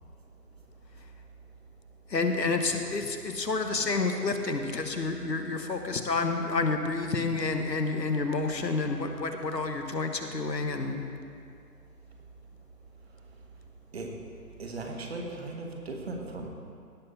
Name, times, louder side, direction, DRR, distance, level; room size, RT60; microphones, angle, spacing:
voice 1, 2.1-11.0, left 3 dB, 90° left, 5 dB, 1.3 m, -29 dB
voice 2, 14.6-16.5, right 2 dB, 40° right, 1 dB, 1.4 m, -37 dB
17.0 x 6.0 x 4.1 m, 2.3 s
figure-of-eight pair, 155°, 49 cm